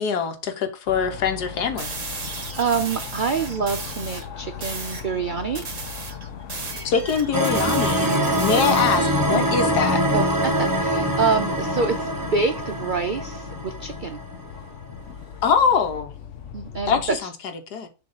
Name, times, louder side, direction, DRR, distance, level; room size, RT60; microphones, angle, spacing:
voice 1, 0.0-1.9 6.8-8.1 8.4-10.0 15.4-16.1 16.9-17.3 17.7-17.9, left 6 dB, 80° left, 1.7 m, -23 dB
sound 1, 0.9-17.2, left 7 dB, 55° left, 1.0 m, -38 dB
sound 2, 1.8-4.3 4.6-5.1 5.5-9.2, right 4 dB, 50° right, 1.9 m, -35 dB
voice 2, 2.2-5.7 8.1-8.5 10.1-14.2 16.5-17.3, right 5 dB, 85° right, 0.4 m, -26 dB
sound 3, 7.3-14.4, right 1 dB, 20° right, 0.7 m, -24 dB
7.0 x 3.1 x 5.5 m
omnidirectional pair, 1.7 m